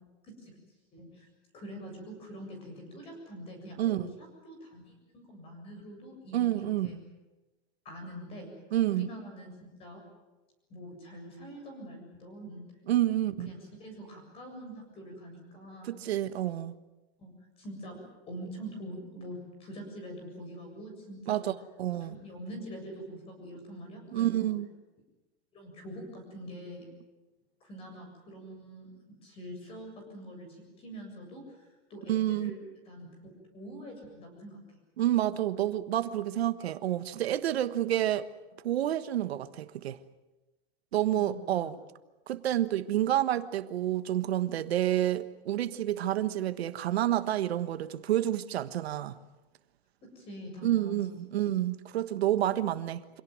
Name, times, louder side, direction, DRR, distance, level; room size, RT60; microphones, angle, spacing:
voice 1, 0.2-0.6 0.9-1.3 1.5-7.0 7.8-8.5 8.8-10.0 10.7-12.6 13.4-16.1 17.2-17.3 17.6-18.0 18.3-21.5 22.0-24.5 25.5-26.8 27.6-31.6 31.9-34.6 41.1-41.7 50.2-51.2, equal, 20° left, 7.5 m, -45 dB
voice 2, 3.8-4.1 6.3-6.9 8.7-9.1 12.9-13.5 15.8-16.7 21.3-21.5 21.8-22.2 24.1-24.7 32.1-32.5 35.0-38.3 38.6-40.0 40.9-41.7 42.3-49.2 50.6-53.2, right 13 dB, 85° right, 1.5 m, -29 dB
26.5 x 17.5 x 9.5 m
supercardioid pair, 180°, 31 cm